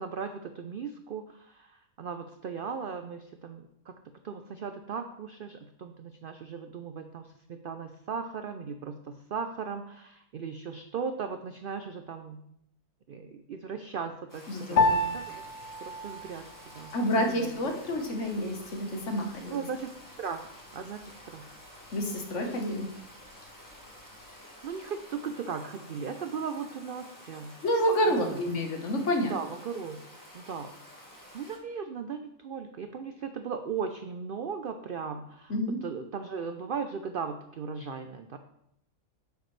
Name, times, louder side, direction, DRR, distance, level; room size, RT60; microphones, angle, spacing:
voice 1, 0.0-3.9 4.2-12.4 13.1-15.5 15.8-17.6 17.8-17.9 19.5-19.9 20.2-20.5 20.7-21.4 24.6-27.5 28.1-28.4 29.3-30.0 30.3-30.7 31.3-35.5 35.8-38.4, right 6 dB, 65° right, 7 dB, 0.5 m, -37 dB
Stream, 14.3-31.6, equal, 15° left, 1.6 m, -51 dB
voice 2, 14.5-15.1 16.9-19.6 21.9-22.9 27.6-29.3 35.5-35.8, equal, 55° left, 3 dB, 1.5 m, -29 dB
Piano, 14.8-24.4, left 2 dB, 80° left, 1.2 m, -34 dB
10.5 x 7.1 x 3.2 m, 0.76 s
omnidirectional pair, 1.5 m